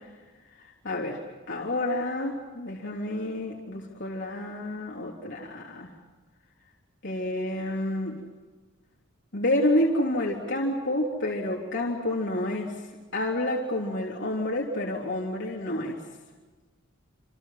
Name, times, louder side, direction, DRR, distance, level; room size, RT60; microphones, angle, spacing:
voice 1, 0.8-1.2 1.5-5.9 7.0-8.2 9.3-12.8 13.1-16.0, left 1 dB, 55° left, -2 dB, 3.4 m, -29 dB
28.5 x 27.5 x 5.9 m, 1.3 s
head